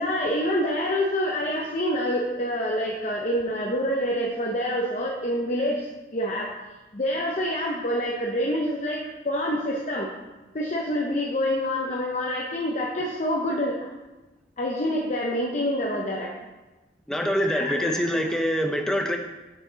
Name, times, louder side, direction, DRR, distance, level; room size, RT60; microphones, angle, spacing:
voice 1, 0.0-5.9 6.1-6.5 6.9-10.1 10.5-13.8 14.6-16.3 17.4-18.3, equal, 40° left, -1 dB, 0.7 m, -27 dB
voice 2, 17.1-19.2, equal, 5° left, 3 dB, 0.6 m, -25 dB
8.4 x 6.4 x 3.9 m, 1.1 s
head